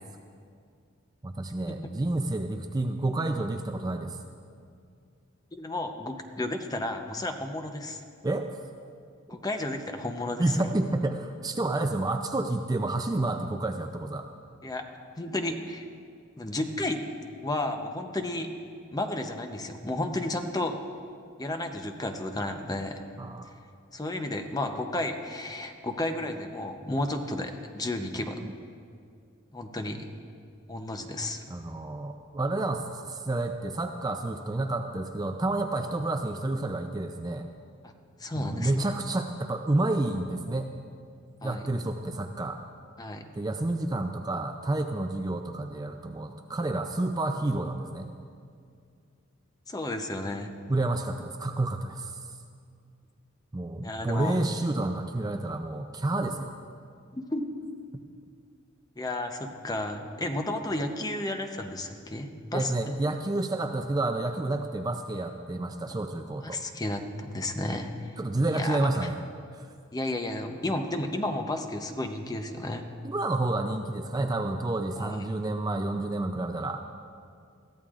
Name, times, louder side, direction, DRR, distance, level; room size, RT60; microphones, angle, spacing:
voice 1, 1.2-4.2 8.2-8.5 10.4-14.3 23.2-23.5 28.4-28.5 31.5-37.5 38.3-40.7 41.4-42.6 43.4-48.1 50.7-52.2 53.5-56.5 57.9-58.0 62.5-66.6 68.2-69.2 69.5-69.7 73.0-76.8, right 2 dB, 20° right, 5 dB, 0.4 m, -29 dB
voice 2, 5.5-8.0 9.3-10.6 14.6-14.8 15.2-15.9 16.4-17.0 17.4-18.5 18.9-20.7 21.4-23.0 23.9-28.4 29.5-30.0 30.7-31.4 37.8-37.9 38.2-38.9 41.4-41.6 43.0-43.2 49.7-50.5 53.8-54.4 57.1-57.4 59.0-62.7 66.4-68.1 68.4-69.1 69.9-72.9 75.0-75.2, left 1 dB, 20° left, 5 dB, 0.7 m, -32 dB
21.5 x 14.0 x 2.5 m, 2.3 s
head